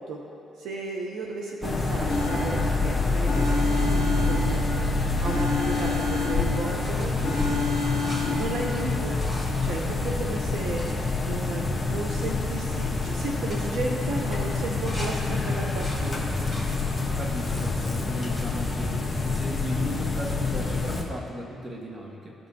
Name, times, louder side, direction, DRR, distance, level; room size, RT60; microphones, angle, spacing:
voice 1, 0.6-4.8 5.2-8.0 8.3-9.2 9.6-16.3, right 3 dB, 80° right, 0 dB, 0.7 m, -34 dB
sound 1, 1.6-21.0, left 3 dB, 15° left, 1.1 m, -27 dB
sound 2, 2.1-2.9 3.3-4.9 5.2-6.8 7.2-8.7, left 3 dB, 70° left, 0.7 m, -29 dB
sound 3, 2.9-6.4 6.6-11.0 11.5-11.6 11.9-12.3 12.6-12.9 13.3-15.1 15.5-16.7 17.2-17.7 18.3-19.1 20.7-20.8, left 1 dB, 15° right, 1.8 m, -44 dB
voice 2, 17.2-19.0 19.2-22.3, equal, 35° right, -1 dB, 1.5 m, -36 dB
15.0 x 5.3 x 2.8 m, 2.7 s
cardioid pair, 90°, 0 cm